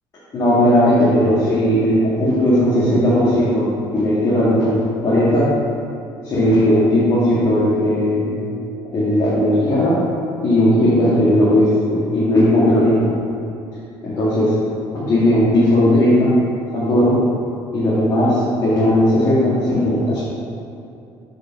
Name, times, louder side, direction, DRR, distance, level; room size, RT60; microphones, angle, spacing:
voice 1, 0.3-5.5 6.2-8.4 8.9-10.0 10.4-13.1 14.0-14.6 14.9-16.3 16.7-17.2 17.7-20.2, left 1 dB, 40° left, -10 dB, 2.0 m, -16 dB
6.6 x 5.1 x 6.8 m, 2.7 s
cardioid pair, 130°, 9 cm